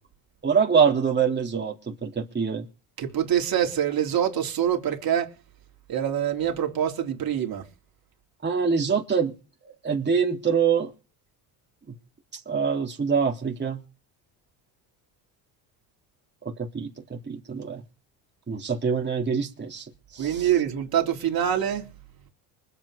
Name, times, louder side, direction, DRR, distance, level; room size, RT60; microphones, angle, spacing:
voice 1, 0.4-2.7 8.4-9.3 9.8-10.9 12.5-13.8 16.7-17.8 18.5-19.9 20.1-20.5, right 6 dB, 25° right, 3.5 m, -24 dB
voice 2, 3.0-5.3 5.9-7.6 20.2-21.9, right 9 dB, 55° right, 3.6 m, -25 dB
24.5 x 8.4 x 5.1 m
supercardioid pair, 90°, 43 cm